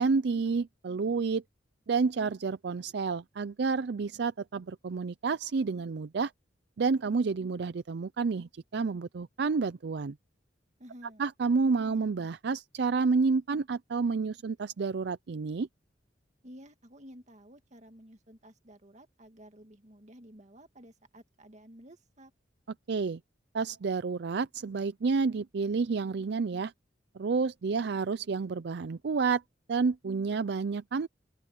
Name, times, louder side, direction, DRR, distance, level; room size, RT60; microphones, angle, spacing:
voice 1, 0.0-1.4 1.9-6.3 6.8-10.2 11.2-15.7 22.9-23.2 23.5-26.7 27.2-29.4 29.7-31.1, right 4 dB, 65° right, 0.5 m, -29 dB
voice 2, 10.8-11.2 16.4-22.3, equal, 40° right, 2.1 m, -52 dB
open air
head